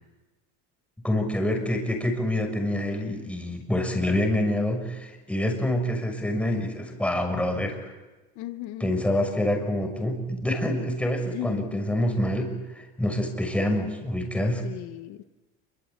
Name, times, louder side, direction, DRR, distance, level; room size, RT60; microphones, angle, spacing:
voice 1, 1.0-7.9 8.8-14.6, left 1 dB, 5° left, 4 dB, 6.2 m, -26 dB
voice 2, 8.3-9.0 11.2-11.8 14.6-15.2, left 15 dB, 75° left, 9 dB, 1.5 m, -36 dB
27.5 x 25.0 x 8.4 m, 1.2 s
cardioid pair, 140°, 30 cm